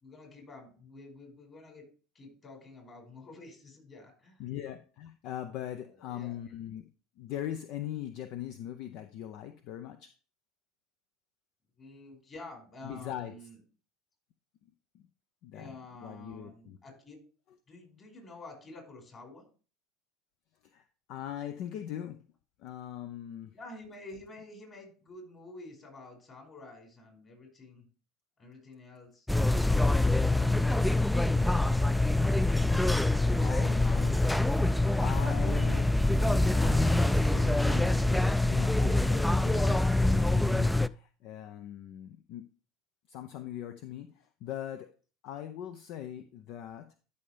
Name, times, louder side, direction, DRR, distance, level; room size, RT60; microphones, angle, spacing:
voice 1, 0.0-1.8 2.1-4.5 5.7-6.4 11.8-13.6 15.5-17.2 17.7-19.4 23.5-27.9 28.4-29.3 29.5-30.0, left 2 dB, 35° left, 3 dB, 5.1 m, -49 dB
voice 2, 4.4-6.9 7.2-10.1 12.8-13.3 14.9-15.0 15.4-16.8 20.6-22.3 22.6-23.5 33.4-34.3 34.6-35.9 36.2-42.5 43.1-44.9 45.2-46.9, left 11 dB, 60° left, 10 dB, 0.6 m, -41 dB
sound 1, 29.3-40.9, left 2 dB, 5° left, 0.3 m, -25 dB
12.5 x 5.5 x 3.3 m, 0.38 s
hypercardioid pair, 75°, 0 cm